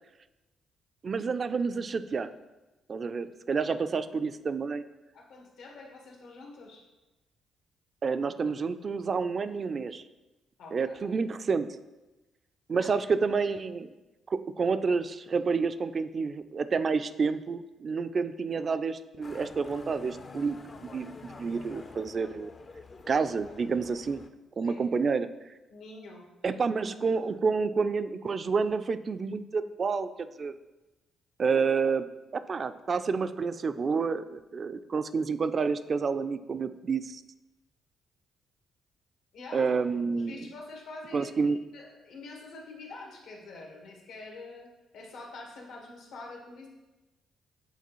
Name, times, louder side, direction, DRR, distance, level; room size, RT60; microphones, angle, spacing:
voice 1, 1.0-2.3 2.9-4.8 8.0-10.0 10.7-11.7 12.7-13.9 14.3-20.6 20.9-22.5 23.1-24.2 24.6-25.3 26.4-30.1 30.4-30.5 31.4-32.0 32.3-37.2 39.5-40.5 41.1-41.6, right 5 dB, 40° right, 12 dB, 0.3 m, -29 dB
voice 2, 5.1-6.8 10.6-11.2 12.8-13.3 21.7-21.9 24.6-24.8 25.7-26.2 26.5-26.6 39.3-39.7 40.1-44.7 44.9-46.7, left 3 dB, 80° left, 0 dB, 1.3 m, -46 dB
Motorcycle, 19.2-24.3, left 4 dB, 35° left, 0.4 m, -48 dB
8.3 x 4.0 x 3.0 m, 1.1 s
cardioid pair, 90°, 0 cm